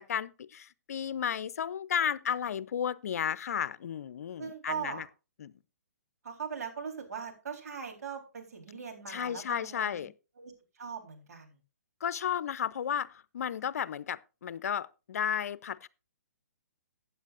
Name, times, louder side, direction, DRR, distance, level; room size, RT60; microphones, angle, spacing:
voice 1, 0.0-5.0 5.4-5.5 9.1-10.1 12.0-15.9, left 8 dB, 65° left, 0.6 m, -33 dB
voice 2, 4.4-5.1 6.2-10.1 10.4-10.5 10.8-11.6, right 6 dB, 75° right, 3.9 m, -40 dB
15.5 x 9.0 x 2.5 m
hypercardioid pair, 140°, 9 cm